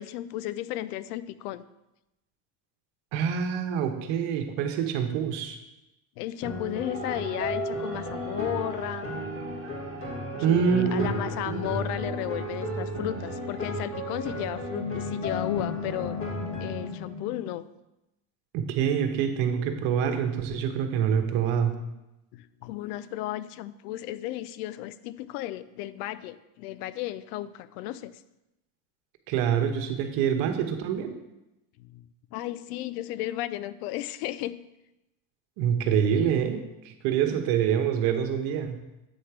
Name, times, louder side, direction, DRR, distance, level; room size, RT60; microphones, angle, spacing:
voice 1, 0.0-1.7 6.2-9.1 10.4-16.2 16.6-17.6 22.3-28.1 31.8-34.7, left 14 dB, 90° left, 16 dB, 0.5 m, -34 dB
voice 2, 3.1-5.6 10.4-11.1 11.5-11.6 18.5-21.7 29.3-31.1 35.6-36.6 36.8-38.7, right 8 dB, 70° right, 6 dB, 1.1 m, -26 dB
sound 1, 6.4-16.9, left 2 dB, 30° left, 1.8 m, -35 dB
sound 2, 6.8-17.5, right 1 dB, 30° right, 1.5 m, -37 dB
8.4 x 3.3 x 5.8 m, 0.92 s
supercardioid pair, 115°, 45 cm